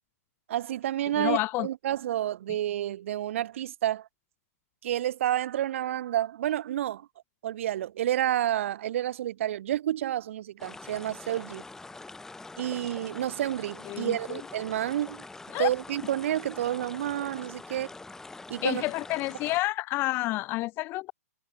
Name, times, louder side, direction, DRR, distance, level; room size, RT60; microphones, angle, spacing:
voice 1, 0.5-4.1 4.8-7.1 7.4-11.6 12.6-15.2 15.6-17.9 18.5-18.8, right 12 dB, 55° right, 1.9 m, -30 dB
voice 2, 1.2-1.7 13.9-14.4 15.5-15.7 18.6-21.1, left 19 dB, 25° left, 0.6 m, -29 dB
sound 1, 10.6-19.6, left 3 dB, 5° left, 1.6 m, -44 dB
hypercardioid pair, 130°, 9 cm